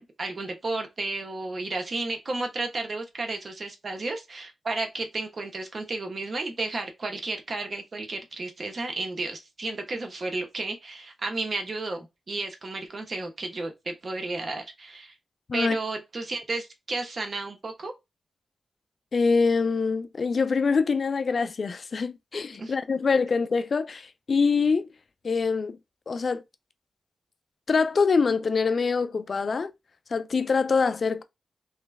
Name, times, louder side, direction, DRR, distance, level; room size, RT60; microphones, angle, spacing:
voice 1, 0.0-15.1 15.5-17.9 22.6-22.7, right 2 dB, 55° right, 1.2 m, -32 dB
voice 2, 19.1-24.9 25.2-25.8 26.1-26.4 27.7-29.7 30.1-31.2, left 4 dB, 60° left, 0.5 m, -24 dB
3.1 x 3.1 x 3.4 m
cardioid pair, 55°, 0 cm